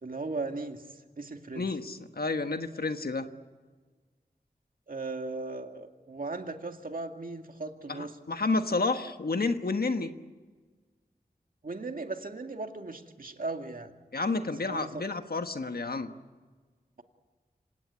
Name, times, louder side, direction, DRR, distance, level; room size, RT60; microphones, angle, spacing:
voice 1, 0.0-1.7 4.9-8.2 11.6-13.9 14.6-15.1, right 3 dB, 60° right, 5 dB, 2.2 m, -37 dB
voice 2, 1.5-3.3 7.9-10.1 14.1-16.1, left 3 dB, 70° left, 7 dB, 1.4 m, -30 dB
27.0 x 17.5 x 9.6 m, 1.4 s
wide cardioid pair, 75°, 16 cm